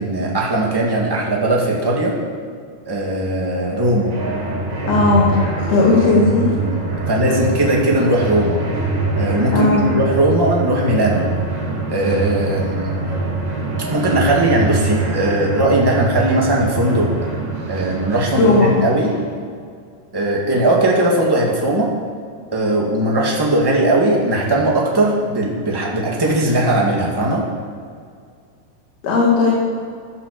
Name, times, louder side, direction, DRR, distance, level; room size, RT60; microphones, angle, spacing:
voice 1, 0.0-2.2 2.9-4.1 6.5-6.8 7.1-8.6 9.1-11.2 11.9-13.0 13.9-17.1 17.7-19.1 20.1-21.9 22.5-27.4, right 1 dB, 10° right, -3 dB, 1.7 m, -18 dB
sound 1, 3.5-19.3, right 3 dB, 55° right, 4.9 m, -24 dB
voice 2, 4.9-5.3 5.7-6.5 9.5-9.9 18.4-18.7 29.0-29.5, left 3 dB, 75° left, -4 dB, 4.5 m, -15 dB
16.0 x 11.0 x 7.0 m, 2.2 s
omnidirectional pair, 4.5 m